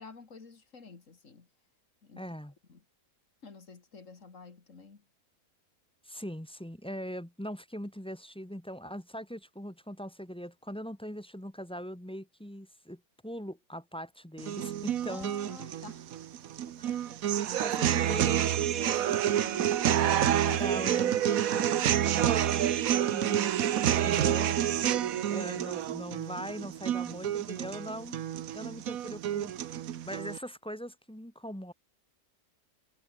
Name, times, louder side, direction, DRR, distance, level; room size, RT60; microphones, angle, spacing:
voice 1, 0.0-1.5 2.0-2.3 2.7-2.8 3.4-5.0 15.1-16.1 16.7-17.2 17.5-17.7 18.7-20.7 24.9-25.4, left 4 dB, 50° left, 2.6 m, -49 dB
voice 2, 2.2-2.5 6.0-15.3 16.8-17.0 17.6-18.4 20.5-22.8 23.1-23.5 24.0-24.6 25.3-28.2 28.5-29.5 30.0-31.7, equal, 5° left, 1.4 m, -41 dB
sound 1, 14.4-30.4, right 10 dB, 65° right, 1.2 m, -28 dB
omnidirectional pair, 1.7 m